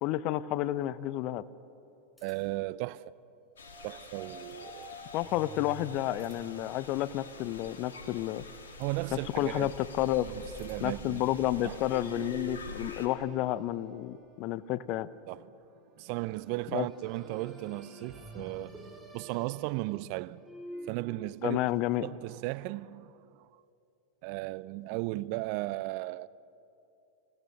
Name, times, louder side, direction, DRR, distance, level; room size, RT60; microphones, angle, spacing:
voice 1, 0.0-1.4 5.1-8.4 9.3-10.3 10.8-15.1 16.7-16.9 21.4-22.1, left 14 dB, 50° left, 0.6 m, -31 dB
sound 1, 2.1-2.7 4.0-5.0 6.1-6.7 8.2-9.0 10.2-11.0, left 1 dB, 10° left, 5.6 m, -66 dB
voice 2, 2.2-3.2 3.8-5.0 8.8-9.7 10.2-11.3 11.6-11.8 15.3-15.7 16.0-18.8 19.1-20.4 20.9-21.6 22.0-23.6 24.2-26.3, right 20 dB, 55° right, 0.4 m, -36 dB
sound 2, 3.6-13.1, left 4 dB, 80° left, 2.0 m, -48 dB
sound 3, 3.6-14.7 16.2-21.0, right 1 dB, 5° right, 4.4 m, -48 dB
25.5 x 17.0 x 6.6 m
hypercardioid pair, 95°, 0 cm